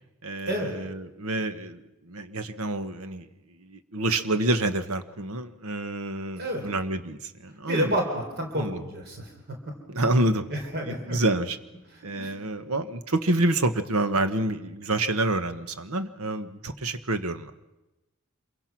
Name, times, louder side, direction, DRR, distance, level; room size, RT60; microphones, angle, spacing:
voice 1, 0.2-3.3 3.6-7.9 8.5-8.8 9.9-11.6 12.0-17.5, right 2 dB, 75° right, 10 dB, 1.3 m, -28 dB
voice 2, 7.7-9.6 10.5-11.2 12.0-12.3, equal, 45° right, 2 dB, 4.0 m, -30 dB
26.5 x 23.0 x 6.0 m, 1.0 s
head